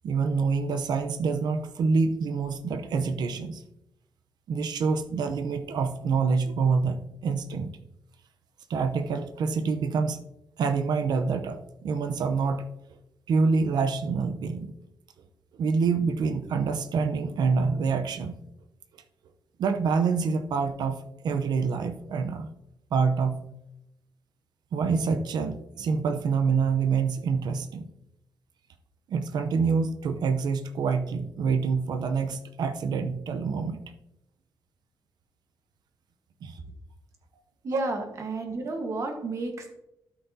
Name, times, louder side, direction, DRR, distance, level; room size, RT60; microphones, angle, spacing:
voice 1, 0.0-3.6 4.5-7.7 8.7-10.2 10.6-12.6 13.3-14.7 15.6-18.4 19.6-22.5 22.9-23.5 24.7-27.9 29.1-33.8 36.4-36.6, right 5 dB, 70° right, 8 dB, 0.8 m, -26 dB
voice 2, 37.6-39.7, right 2 dB, 45° right, 3 dB, 1.4 m, -31 dB
12.5 x 5.8 x 2.8 m, 0.84 s
wide cardioid pair, 180°, 7 cm